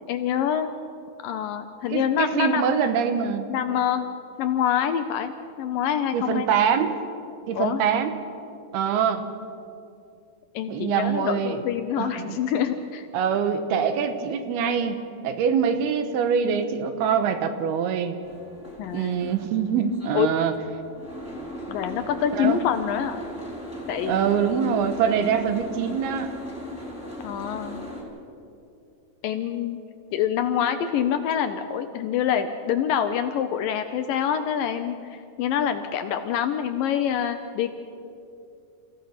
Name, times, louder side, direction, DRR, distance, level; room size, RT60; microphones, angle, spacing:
voice 1, 0.1-0.7 1.2-2.8 3.5-4.1 4.4-5.3 5.6-6.5 7.5-7.8 10.5-13.1 18.8-19.2 20.1-20.3 21.7-23.2 23.9-24.3 27.2-27.8 29.2-29.8 30.1-37.7, left 9 dB, 75° left, 9 dB, 2.1 m, -26 dB
voice 2, 1.9-3.5 6.1-7.0 7.5-8.1 8.7-9.2 10.7-11.6 12.0-12.4 13.1-18.2 18.9-20.6 22.3-22.6 24.0-26.3, right 7 dB, 80° right, 8 dB, 3.1 m, -24 dB
Boat Water vehicle, 18.2-28.0, equal, 5° left, 3.6 m, -38 dB
29.5 x 15.5 x 5.9 m, 2.5 s
omnidirectional pair, 4.6 m